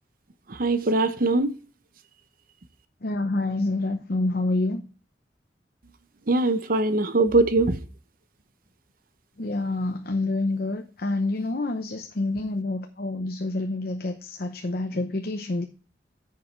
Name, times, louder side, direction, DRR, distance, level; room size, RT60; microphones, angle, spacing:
voice 1, 0.6-1.5 6.3-7.8, right 2 dB, 50° right, 0.7 m, -21 dB
voice 2, 3.0-4.8 9.4-15.6, left 2 dB, 60° left, 0.8 m, -27 dB
10.0 x 6.9 x 3.2 m
head